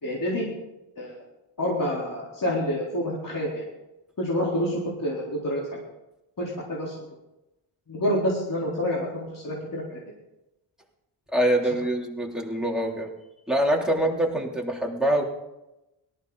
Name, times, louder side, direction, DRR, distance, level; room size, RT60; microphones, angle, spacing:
voice 1, 0.0-0.5 1.0-1.1 1.6-3.6 4.2-5.6 6.4-6.9 7.9-10.0, equal, 40° left, -5 dB, 4.0 m, -28 dB
voice 2, 11.3-13.1 13.5-15.2, right 1 dB, ahead, -2 dB, 3.3 m, -24 dB
18.0 x 13.5 x 4.1 m, 0.95 s
cardioid pair, 60°, 49 cm